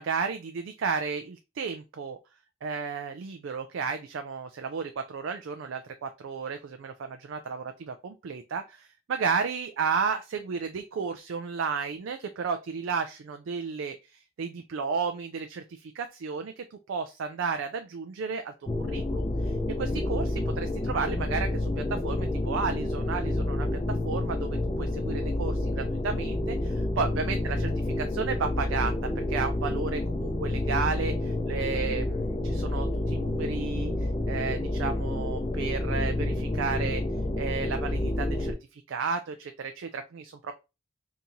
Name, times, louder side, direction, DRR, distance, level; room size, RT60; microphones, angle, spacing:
voice 1, 0.0-2.2 2.6-18.5 18.8-23.7 24.1-27.7 28.0-37.0 37.4-40.5, right 5 dB, 90° right, 7 dB, 0.4 m, -33 dB
sound 1, 18.7-38.5, left 1 dB, 25° left, 0.4 m, -29 dB
2.9 x 2.7 x 3.6 m, 0.27 s
head